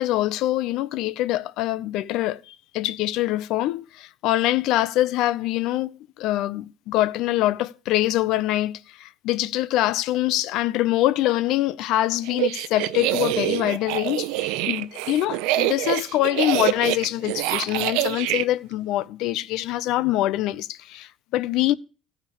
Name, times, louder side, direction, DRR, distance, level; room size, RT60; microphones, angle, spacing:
voice 1, 0.0-21.7, left 15 dB, 65° left, 0.6 m, -24 dB
sound 1, 12.3-18.4, right 16 dB, 85° right, 0.6 m, -25 dB
15.0 x 5.2 x 6.9 m
cardioid pair, 150°, 0 cm